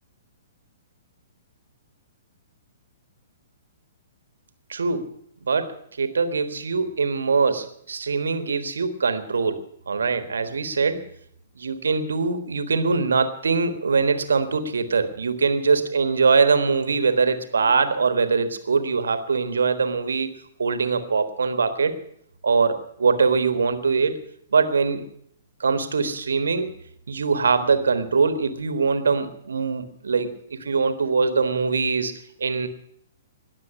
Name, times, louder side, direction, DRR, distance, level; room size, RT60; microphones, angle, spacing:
voice 1, 4.7-5.1 5.4-11.1 11.6-20.3 20.6-21.9 22.4-24.2 24.5-25.1 25.6-26.7 27.1-32.1 32.4-32.7, right 4 dB, 65° right, 10 dB, 1.4 m, -22 dB
19.5 x 7.4 x 8.4 m, 0.68 s
figure-of-eight pair, 115°, 0 cm